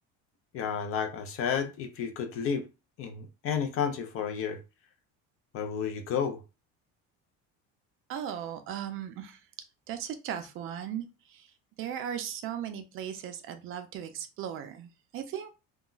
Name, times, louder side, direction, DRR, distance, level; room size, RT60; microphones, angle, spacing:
voice 1, 0.5-2.7 3.0-4.6 5.5-6.4, left 7 dB, 45° left, 0.5 m, -31 dB
voice 2, 8.1-9.4 9.9-11.5 11.8-15.5, right 9 dB, 45° right, 0.4 m, -37 dB
2.3 x 2.0 x 3.7 m
cardioid pair, 160°, 31 cm